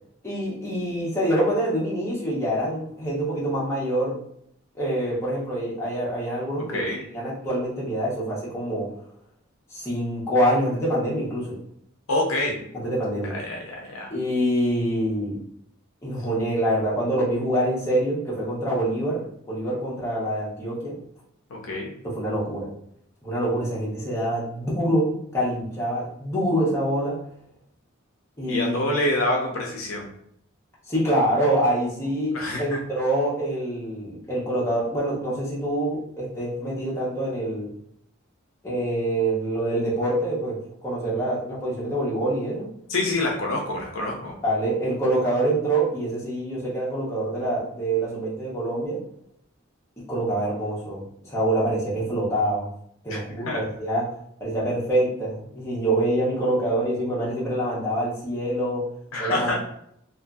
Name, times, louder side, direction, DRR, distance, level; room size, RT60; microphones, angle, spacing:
voice 1, 0.2-4.2 4.8-6.8 7.1-8.9 9.7-11.5 12.8-13.3 14.1-15.4 16.0-19.2 19.5-20.9 22.0-22.7 23.2-27.2 28.4-28.7 30.9-37.7 38.6-42.7 44.4-49.0 50.1-52.7 53.0-54.0 54.4-58.8 59.2-59.6, right 1 dB, 15° left, -7 dB, 0.9 m, -25 dB
voice 2, 6.7-7.0 12.1-12.6 13.2-14.1 21.5-21.9 28.5-30.1 32.3-32.8 42.9-44.3 53.1-53.6 59.1-59.6, left 1 dB, 75° left, 0 dB, 0.6 m, -27 dB
2.6 x 2.5 x 2.3 m, 0.70 s
head